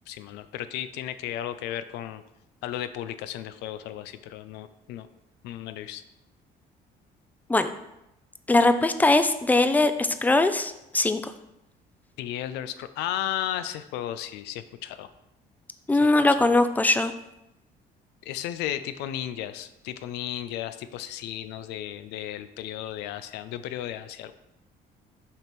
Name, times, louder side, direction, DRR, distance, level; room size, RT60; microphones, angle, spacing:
voice 1, 0.1-2.2 2.6-5.1 5.4-6.0 12.2-15.1 18.3-24.3, left 11 dB, 90° left, 12 dB, 0.5 m, -34 dB
voice 2, 8.5-11.2 15.9-17.1, left 2 dB, 10° left, 10 dB, 0.5 m, -21 dB
6.6 x 3.6 x 6.0 m, 0.88 s
cardioid pair, 110°, 17 cm